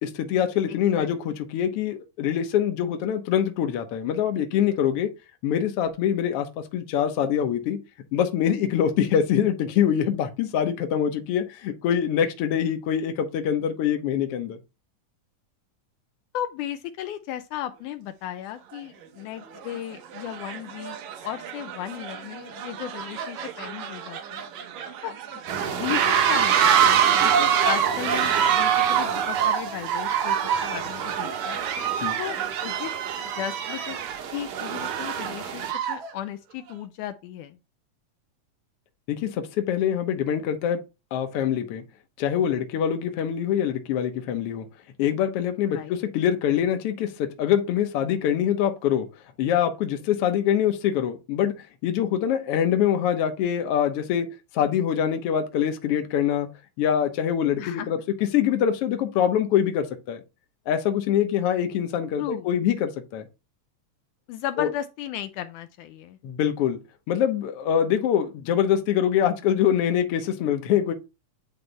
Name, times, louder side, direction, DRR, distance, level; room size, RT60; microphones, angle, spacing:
voice 1, 0.0-5.1 5.4-7.8 8.1-14.6 32.0-32.1 39.1-40.8 41.1-41.8 42.2-44.7 45.0-49.1 49.4-51.5 51.8-54.3 54.5-56.5 56.8-60.2 60.7-63.3 64.6-64.7 66.2-66.8 67.1-70.9, left 9 dB, 65° left, 1.6 m, -24 dB
voice 2, 0.7-1.1 16.3-21.0 21.2-24.5 25.0-25.1 25.7-30.4 30.6-31.6 32.2-32.9 33.3-34.0 34.3-37.6 45.7-46.0 57.6-57.9 62.2-62.5 64.3-66.2, left 12 dB, 80° left, 2.0 m, -35 dB
sound 1, 18.7-18.8 19.5-19.8 20.1-36.1, right 8 dB, 70° right, 2.1 m, -25 dB
sound 2, 25.5-35.7, right 7 dB, 85° right, 2.8 m, -35 dB
9.7 x 3.4 x 4.0 m
omnidirectional pair, 3.7 m